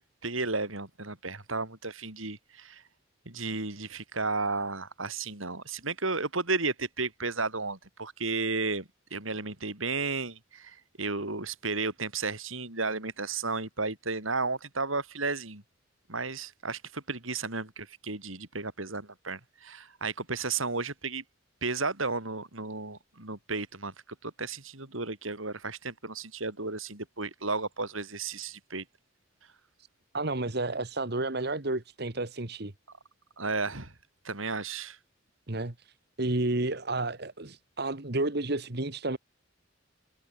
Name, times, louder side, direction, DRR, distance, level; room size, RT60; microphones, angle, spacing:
voice 1, 0.0-2.8 3.3-15.6 16.1-21.2 21.6-23.9 24.2-28.8 33.4-33.9 34.2-35.0, right 3 dB, 80° right, 6.0 m, -33 dB
voice 2, 30.1-32.7 35.5-35.7 36.2-39.2, right 2 dB, 55° right, 1.7 m, -31 dB
head